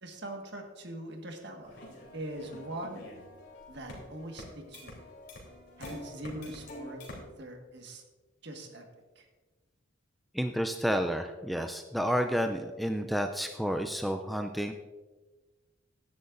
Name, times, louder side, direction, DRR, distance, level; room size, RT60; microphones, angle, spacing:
voice 1, 0.0-1.8 2.1-3.1 3.7-4.9 5.8-7.0 7.4-8.0 8.4-8.9 9.1-9.2, right 1 dB, 60° right, 3 dB, 1.6 m, -42 dB
sound 1, 1.6-7.2, left 1 dB, 55° left, 3.3 m, -47 dB
voice 2, 10.3-14.7, equal, ahead, 6 dB, 0.4 m, -30 dB
16.0 x 10.5 x 2.6 m, 1.3 s
head